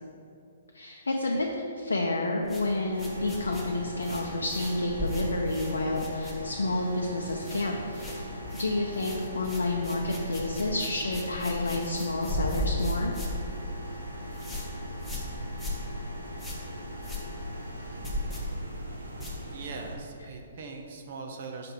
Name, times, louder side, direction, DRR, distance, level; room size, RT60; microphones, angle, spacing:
voice 1, 0.7-8.3 8.6-13.1, left 2 dB, 75° left, 0 dB, 0.6 m, -30 dB
sound 1, 2.4-6.8 7.1-7.7 7.9-19.9, left 1 dB, 5° left, 1.2 m, -37 dB
sound 2, 2.9-20.0, equal, 90° right, 1.0 m, -40 dB
voice 2, 19.5-21.7, right 4 dB, 50° right, 3 dB, 0.8 m, -41 dB
5.7 x 3.7 x 5.8 m, 2.6 s
figure-of-eight pair, 125°, 0 cm